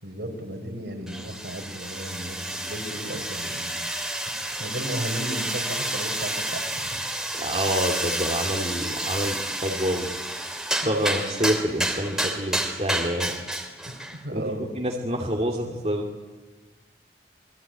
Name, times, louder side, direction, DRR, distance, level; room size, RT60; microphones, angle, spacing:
voice 1, 0.0-3.8 4.5-6.9 13.9-14.7, right 1 dB, 70° right, 4 dB, 5.0 m, -34 dB
sound 1, 1.1-14.2, right 1 dB, 5° right, 3.1 m, -30 dB
voice 2, 7.3-10.1 10.8-13.3 14.3-16.0, equal, 35° right, 0 dB, 2.6 m, -27 dB
28.0 x 22.0 x 9.2 m, 1.2 s
head